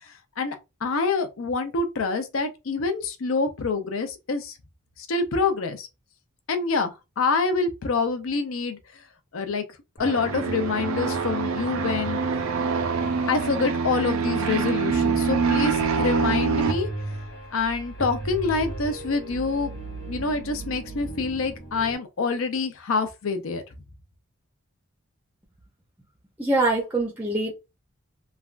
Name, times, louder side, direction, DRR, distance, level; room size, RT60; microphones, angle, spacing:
voice 1, 0.1-0.6 0.8-4.6 5.0-5.9 6.5-8.8 9.3-9.6 10.0-12.2 13.3-16.9 17.5-19.7 20.0-23.6, left 4 dB, 70° left, 0.6 m, -26 dB
sound 1, 10.0-15.4, equal, 25° left, 1.0 m, -44 dB
sound 2, 10.0-16.7, right 5 dB, 75° right, 0.4 m, -25 dB
Piano, 14.9-21.9, right 1 dB, 50° left, 1.1 m, -35 dB
voice 2, 26.4-27.5, right 2 dB, 10° right, 0.5 m, -24 dB
3.3 x 2.2 x 2.4 m
head